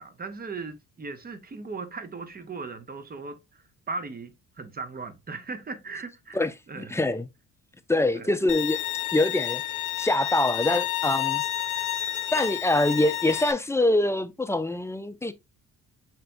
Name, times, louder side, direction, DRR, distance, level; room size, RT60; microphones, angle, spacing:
voice 1, 0.0-7.0 8.1-8.4, right 4 dB, 30° right, 0.9 m, -38 dB
voice 2, 6.3-7.3 7.9-8.8 9.1-9.6 10.0-11.4 11.7-11.8 12.3-15.3, left 1 dB, 10° left, 0.4 m, -24 dB
Bowed string instrument, 8.5-13.5, left 14 dB, 70° left, 0.6 m, -30 dB
5.9 x 3.3 x 2.5 m
supercardioid pair, 75°, 33 cm